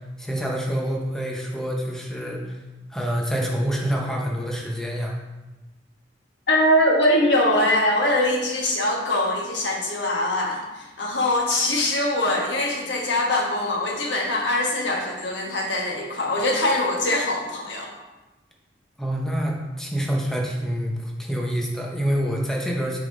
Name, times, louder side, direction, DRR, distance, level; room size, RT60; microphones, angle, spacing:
voice 1, 0.2-2.6 2.9-5.2 19.0-23.0, equal, 5° left, -2 dB, 0.8 m, -26 dB
voice 2, 6.5-17.9, left 1 dB, 75° left, -1 dB, 1.3 m, -22 dB
5.7 x 4.9 x 3.9 m, 1.1 s
head